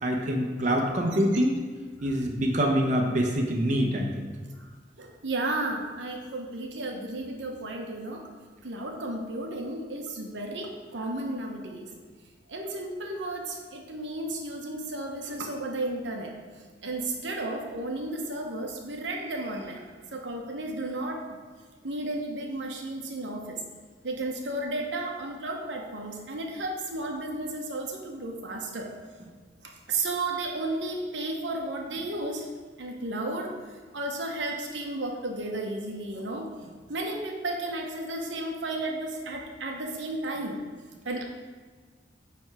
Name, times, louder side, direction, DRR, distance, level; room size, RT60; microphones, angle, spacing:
voice 1, 0.0-1.6 2.0-4.3, equal, 45° right, 0 dB, 0.9 m, -25 dB
voice 2, 5.0-8.2 8.6-11.9 12.5-16.3 16.8-19.9 20.1-21.4 21.8-23.6 24.0-28.9 29.9-32.5 32.8-33.5 33.9-36.5 36.9-40.6 41.0-41.2, right 2 dB, 80° right, 1 dB, 1.0 m, -33 dB
9.0 x 3.5 x 4.8 m, 1.5 s
head